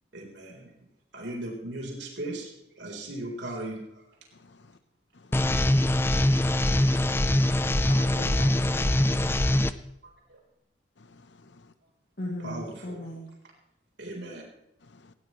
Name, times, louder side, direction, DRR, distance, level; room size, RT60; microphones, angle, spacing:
voice 1, 0.1-0.7 1.1-3.8 10.3-10.4 12.4-13.0 14.0-14.4, right 1 dB, 80° right, 3.8 m, -37 dB
voice 2, 4.4-4.7 5.1-6.0 11.0-11.7 14.8-15.1, left 3 dB, 75° left, 0.9 m, -56 dB
sound 1, 5.3-9.7, left 1 dB, 15° left, 0.5 m, -23 dB
voice 3, 7.9-8.9 12.2-13.3, left 1 dB, 55° left, 2.4 m, -38 dB
18.5 x 15.5 x 3.1 m
head